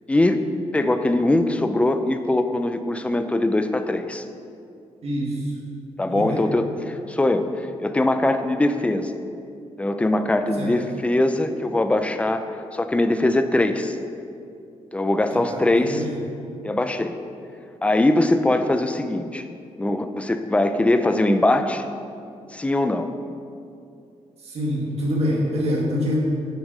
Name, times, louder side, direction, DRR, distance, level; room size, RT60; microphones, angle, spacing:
voice 1, 0.1-0.4 0.7-4.2 6.0-9.1 9.8-14.0 14.9-16.0 16.6-17.2 17.8-19.5 19.8-21.9 22.5-23.1, left 1 dB, 10° left, 8 dB, 0.5 m, -21 dB
voice 2, 5.0-5.6 6.1-6.4 10.6-10.8 15.3-16.2 24.4-26.2, equal, 65° right, -4 dB, 2.1 m, -26 dB
7.9 x 7.3 x 5.4 m, 2.5 s
wide cardioid pair, 140°, 12 cm